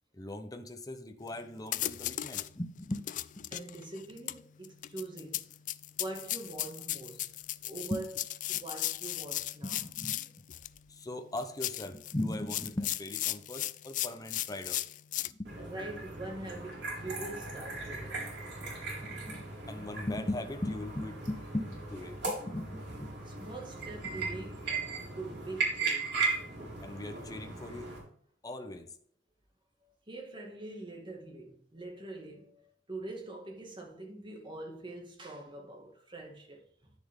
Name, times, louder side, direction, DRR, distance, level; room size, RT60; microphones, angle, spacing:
voice 1, 0.1-3.1 3.4-3.5 7.9-8.0 8.5-8.6 9.6-10.4 10.9-14.8 15.3-15.5 19.0-23.1 26.8-27.9 28.4-28.9, left 1 dB, 20° left, 0.9 m, -39 dB
sound 1, 1.3-1.4 1.7-2.5 2.9-10.8 11.4-15.3, left 14 dB, 45° left, 0.3 m, -36 dB
voice 2, 3.5-5.5 6.0-7.3 7.6-8.2 8.5-9.8 15.6-18.2 23.3-24.8 25.1-26.3 29.8-36.9, right 2 dB, 25° right, 2.1 m, -44 dB
sound 2, 15.4-28.0, right 4 dB, 65° right, 4.1 m, -37 dB
10.5 x 6.9 x 3.7 m
head